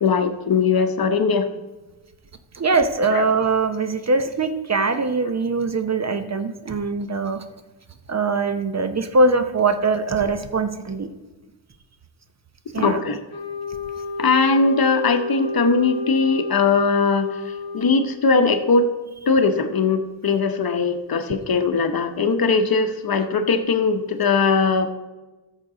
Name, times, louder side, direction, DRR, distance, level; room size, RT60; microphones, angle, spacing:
voice 1, 0.0-1.5 3.1-3.2 12.8-13.2 14.2-18.9 19.3-24.9, left 4 dB, 50° left, 8 dB, 0.9 m, -20 dB
voice 2, 2.5-7.4 8.1-11.1 12.7-13.0, right 3 dB, 35° right, 9 dB, 0.7 m, -22 dB
sound 1, 13.3-18.2, left 2 dB, 10° left, 1.2 m, -30 dB
13.5 x 6.6 x 3.8 m, 1.2 s
wide cardioid pair, 105°, 47 cm